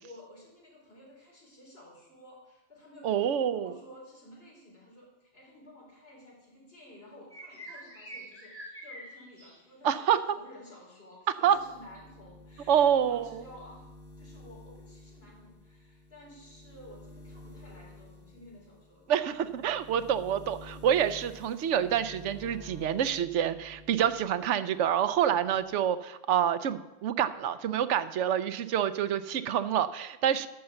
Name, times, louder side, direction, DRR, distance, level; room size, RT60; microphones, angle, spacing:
voice 1, 0.0-19.4, left 1 dB, 55° left, -4 dB, 4.5 m, -53 dB
voice 2, 3.0-3.7 9.8-10.2 11.4-11.6 12.7-13.4 19.1-30.5, right 9 dB, 85° right, 12 dB, 1.0 m, -27 dB
sound 1, 7.3-9.6 11.0-11.1, right 1 dB, 10° left, 3.0 m, -46 dB
sound 2, 11.4-24.4 24.7-25.7, left 2 dB, 10° right, 2.0 m, -51 dB
11.5 x 7.0 x 6.6 m, 1.1 s
omnidirectional pair, 1.2 m